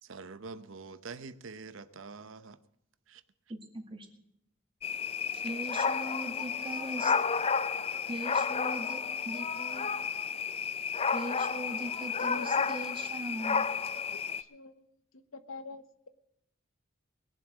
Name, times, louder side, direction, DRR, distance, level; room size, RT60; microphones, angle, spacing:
voice 1, 0.0-2.6 3.1-3.2, right 4 dB, 70° right, 0.8 m, -45 dB
voice 2, 3.5-4.1 5.4-7.1 8.1-9.9 11.1-13.7, right 1 dB, 25° right, 2.1 m, -40 dB
sound 1, 4.8-14.4, left 5 dB, 30° left, 0.5 m, -32 dB
voice 3, 12.2-12.9 14.1-14.9 15.1-16.1, left 4 dB, 90° left, 1.0 m, -46 dB
21.0 x 7.6 x 6.1 m
head